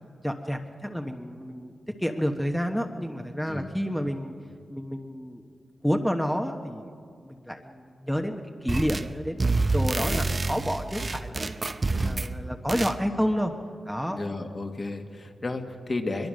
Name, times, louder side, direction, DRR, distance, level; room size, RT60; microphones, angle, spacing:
voice 1, 0.2-1.7 2.0-4.3 4.7-5.5 5.8-13.5 13.8-14.2, equal, ahead, 4 dB, 1.2 m, -30 dB
sound 1, 8.7-9.1 9.4-12.3 12.7-13.0, right 3 dB, 35° right, 0.7 m, -27 dB
voice 2, 11.9-12.3 14.1-16.3, left 2 dB, 40° left, 4 dB, 1.8 m, -33 dB
22.5 x 22.0 x 6.5 m, 2.3 s
cardioid pair, 70°, 0 cm